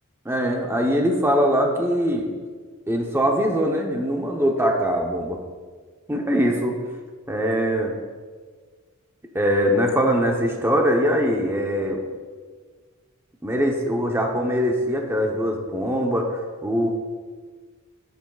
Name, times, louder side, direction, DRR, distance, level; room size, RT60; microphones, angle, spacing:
voice 1, 0.2-2.3 2.9-5.4 6.1-6.7 7.3-7.9 9.3-12.0 13.4-16.9, equal, 10° right, 1 dB, 0.8 m, -22 dB
11.0 x 8.1 x 2.4 m, 1.5 s
head